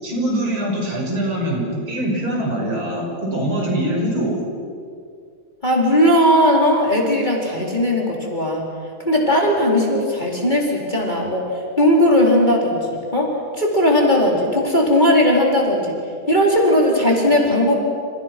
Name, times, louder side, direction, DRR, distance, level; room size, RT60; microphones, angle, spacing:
voice 1, 0.0-4.4, right 1 dB, 70° right, -1 dB, 7.2 m, -23 dB
voice 2, 5.6-8.6 9.0-15.9 16.3-17.8, left 1 dB, 20° left, -2 dB, 4.5 m, -17 dB
29.5 x 29.5 x 6.2 m, 2.2 s
omnidirectional pair, 2.4 m